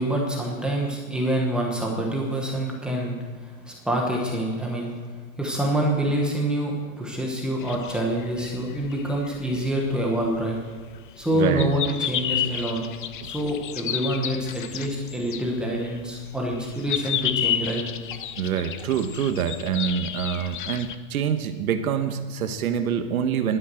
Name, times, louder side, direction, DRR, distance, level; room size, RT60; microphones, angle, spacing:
voice 1, 0.0-4.9 5.4-10.6 11.2-12.8 13.2-17.8, right 1 dB, ahead, -2 dB, 1.0 m, -26 dB
sound 1, 7.6-21.0, left 10 dB, 40° left, 0.5 m, -32 dB
voice 2, 11.3-11.7 13.2-13.3 18.4-23.6, right 8 dB, 85° right, 8 dB, 1.2 m, -26 dB
11.5 x 10.0 x 7.6 m, 1.5 s
supercardioid pair, 175°, 42 cm